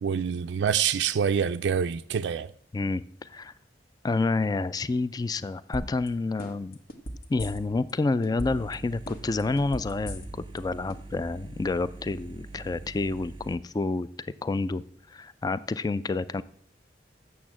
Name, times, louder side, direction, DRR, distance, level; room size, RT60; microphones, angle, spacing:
voice 1, 0.0-2.5, right 7 dB, 75° right, 0.4 m, -26 dB
voice 2, 2.7-3.5 4.0-6.8 7.3-14.8 15.1-16.4, left 3 dB, 20° left, 0.3 m, -29 dB
sound 1, 5.7-6.1 6.4-7.9 8.2-8.7 9.1-10.6 10.9-11.0, equal, 60° left, 1.2 m, -36 dB
sound 2, 8.4-13.6, right 2 dB, 25° right, 0.6 m, -44 dB
8.3 x 7.0 x 7.4 m
head